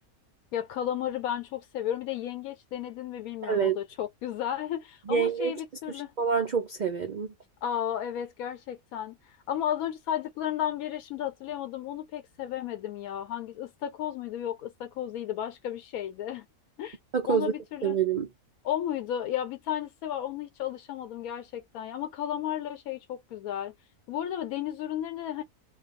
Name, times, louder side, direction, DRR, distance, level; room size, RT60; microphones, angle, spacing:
voice 1, 0.5-6.1 7.6-16.5 16.8-17.0 17.3-18.0 18.6-23.7 24.1-25.4, left 10 dB, 85° left, 1.1 m, -33 dB
voice 2, 3.4-3.8 5.1-5.5 6.2-7.3 17.1-17.5 17.8-18.3, right 7 dB, 85° right, 0.4 m, -26 dB
2.3 x 2.2 x 3.6 m
omnidirectional pair, 1.5 m